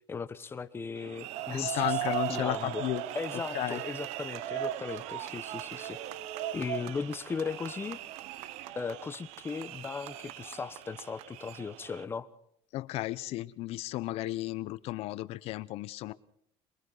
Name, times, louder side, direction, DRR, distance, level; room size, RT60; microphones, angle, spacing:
voice 1, 0.1-2.8 3.1-6.0 6.5-8.0 8.7-12.3, left 5 dB, 20° left, 13 dB, 1.1 m, -37 dB
sound 1, 1.0-12.0, right 13 dB, 80° right, 1.0 m, -38 dB
voice 2, 1.5-3.0 3.5-3.8 12.7-16.1, left 16 dB, 65° left, 16 dB, 1.0 m, -34 dB
27.5 x 24.0 x 4.1 m, 0.67 s
cardioid pair, 150°, 11 cm